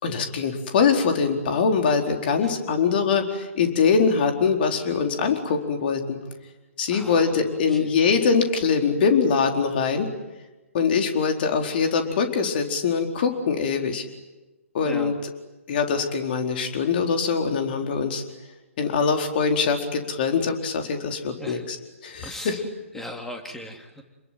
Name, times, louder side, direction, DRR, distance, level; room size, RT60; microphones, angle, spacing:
voice 1, 0.0-6.2 6.8-10.1 10.7-14.0 14.7-15.1 15.7-18.2 18.8-21.8 22.0-22.6, left 5 dB, 45° left, 4 dB, 4.3 m, -23 dB
voice 2, 6.9-7.9 14.8-15.2 21.4-21.6 22.2-22.7 22.9-24.0, left 1 dB, 5° left, 3 dB, 3.0 m, -38 dB
28.5 x 21.0 x 9.3 m, 1.1 s
figure-of-eight pair, 130°, 7 cm